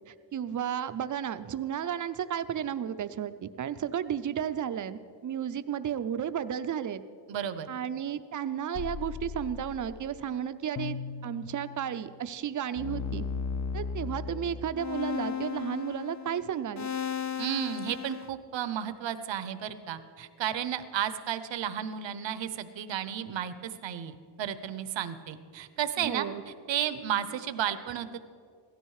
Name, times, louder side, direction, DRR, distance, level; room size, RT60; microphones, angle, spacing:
voice 1, 0.1-7.0 7.7-13.2 13.7-16.9 26.0-26.4, right 9 dB, 40° right, 12 dB, 0.6 m, -33 dB
voice 2, 7.3-7.7 17.4-26.3 26.7-28.2, right 10 dB, 70° right, 12 dB, 0.9 m, -33 dB
sound 1, 8.7-10.1 10.8-12.1 12.8-18.3, left 6 dB, 40° left, 0.5 m, -36 dB
16.0 x 13.0 x 4.8 m, 2.3 s
cardioid pair, 125°, 47 cm